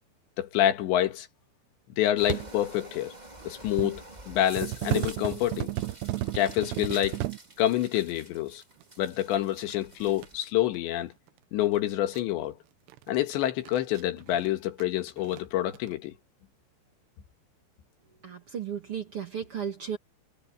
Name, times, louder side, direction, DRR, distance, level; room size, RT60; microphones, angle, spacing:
voice 1, 0.4-1.3 2.0-3.1 3.5-5.7 6.3-7.2 7.6-8.6 9.0-11.1 11.5-12.6 13.1-16.1, left 12 dB, 85° left, 3.9 m, -27 dB
sound 1, 2.2-10.4, right 2 dB, 10° right, 2.2 m, -48 dB
sound 2, 2.3-2.5 3.4-4.0 4.6-7.4 8.8-8.9 9.6-10.3 11.3-11.4 11.7-11.8 12.1-12.2 12.9-14.5 14.8-14.9 15.2-15.4 15.7-15.9, right 15 dB, 75° right, 2.9 m, -33 dB
voice 2, 18.2-20.0, right 8 dB, 40° right, 2.3 m, -34 dB
omnidirectional pair, 5.0 m